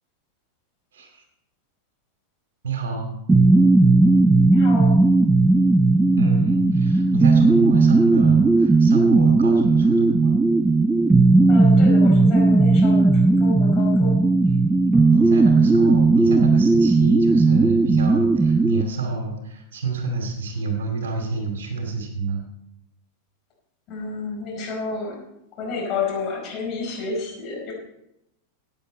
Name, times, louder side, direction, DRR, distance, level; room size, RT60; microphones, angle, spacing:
voice 1, 2.6-3.2 6.1-10.4 15.1-22.4, right 4 dB, 60° right, 3 dB, 2.4 m, -28 dB
sound 1, 3.3-18.8, right 3 dB, 10° right, 0.4 m, -16 dB
voice 2, 4.5-5.0 11.5-14.2 23.9-25.2 25.6-27.7, left 4 dB, 35° left, -2 dB, 4.8 m, -30 dB
15.0 x 9.2 x 4.3 m, 0.84 s
figure-of-eight pair, 90°, 0 cm